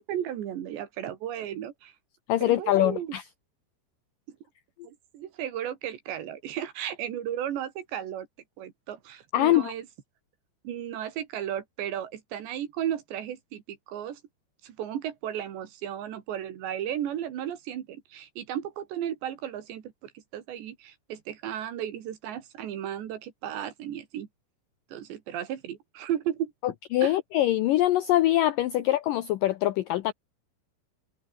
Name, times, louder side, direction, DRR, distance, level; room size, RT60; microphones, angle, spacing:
voice 1, 0.0-1.9 2.4-3.2 4.8-8.3 8.6-9.9 10.6-14.2 14.6-24.3 24.9-26.5 27.0-27.2, right 10 dB, 80° right, 4.4 m, -34 dB
voice 2, 2.3-3.2 9.3-9.7 26.6-30.1, left 14 dB, 80° left, 2.0 m, -24 dB
omnidirectional pair, 5.0 m